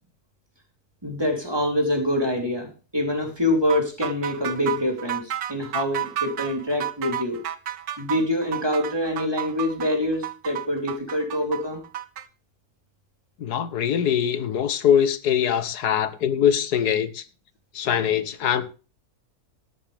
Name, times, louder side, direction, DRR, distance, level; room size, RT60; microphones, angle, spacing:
voice 1, 1.0-7.4 8.0-11.8, left 1 dB, 15° right, 3.5 m, -25 dB
sound 1, 3.7-12.3, right 11 dB, 70° right, 1.5 m, -31 dB
voice 2, 13.4-17.2 17.7-18.7, left 9 dB, 85° left, 1.5 m, -22 dB
14.0 x 11.0 x 3.5 m
omnidirectional pair, 1.7 m